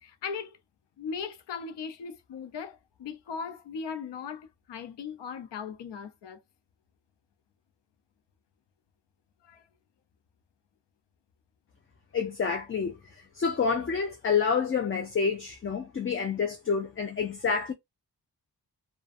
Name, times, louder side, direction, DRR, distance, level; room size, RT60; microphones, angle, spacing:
voice 1, 0.0-0.6 1.0-6.4 9.4-9.7, left 6 dB, 85° left, 0.7 m, -38 dB
voice 2, 12.1-17.7, left 6 dB, 30° left, 0.5 m, -28 dB
2.5 x 2.2 x 2.5 m
wide cardioid pair, 125°, 41 cm